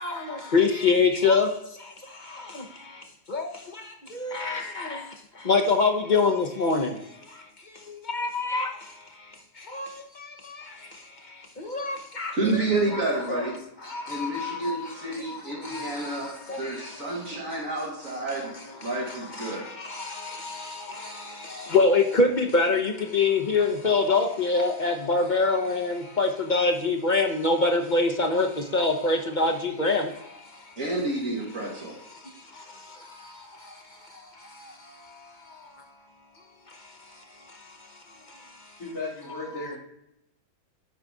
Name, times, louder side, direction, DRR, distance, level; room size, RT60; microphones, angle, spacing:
voice 1, 0.0-12.3 12.9-13.0 13.3-13.4 13.8-17.4 18.3-18.4 18.8-30.8 32.1-35.9 36.7-38.0 38.3-38.8 39.5-39.8, left 3 dB, 45° left, 0.6 m, -27 dB
voice 2, 12.3-13.6 14.1-18.5 18.8-19.7 30.8-32.0, right 2 dB, 60° right, 2.0 m, -29 dB
voice 3, 38.8-39.8, left 2 dB, 70° left, 3.6 m, -35 dB
10.5 x 4.0 x 4.8 m
omnidirectional pair, 1.7 m